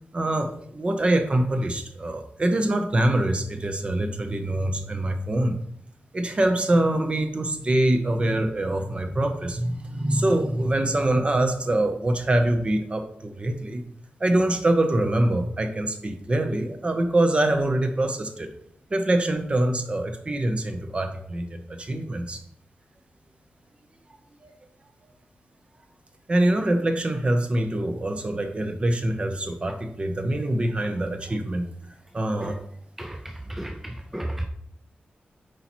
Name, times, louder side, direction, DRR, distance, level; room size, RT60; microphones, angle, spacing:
voice 1, 0.1-5.6 6.1-13.8 14.2-18.5 18.9-22.4 24.4-24.5 26.3-31.7 32.1-32.6, right 1 dB, 30° right, 0.8 m, -24 dB
voice 2, 33.0-34.5, right 1 dB, 5° right, 0.4 m, -33 dB
8.0 x 4.8 x 3.1 m
wide cardioid pair, 150°, 4 cm